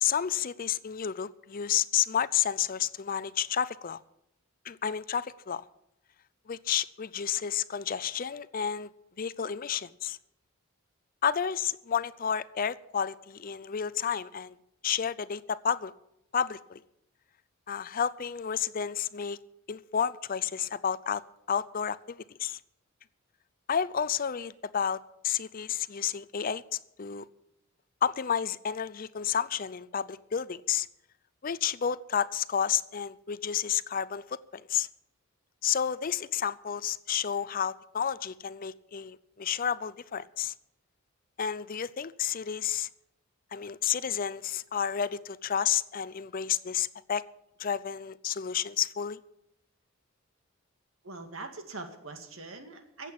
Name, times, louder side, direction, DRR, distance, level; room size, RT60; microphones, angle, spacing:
voice 1, 0.0-4.0 4.7-5.6 6.5-8.9 9.2-10.2 11.2-14.6 14.8-15.9 16.3-16.8 17.7-19.4 19.7-21.2 21.5-22.6 23.7-26.6 27.0-27.2 28.0-30.9 31.4-34.9 35.6-40.5 41.4-42.9 43.5-47.2 47.6-49.2, left 8 dB, 45° left, 17 dB, 0.5 m, -31 dB
voice 2, 51.0-53.1, right 3 dB, 75° right, 6 dB, 2.2 m, -42 dB
15.0 x 8.3 x 8.4 m, 0.82 s
head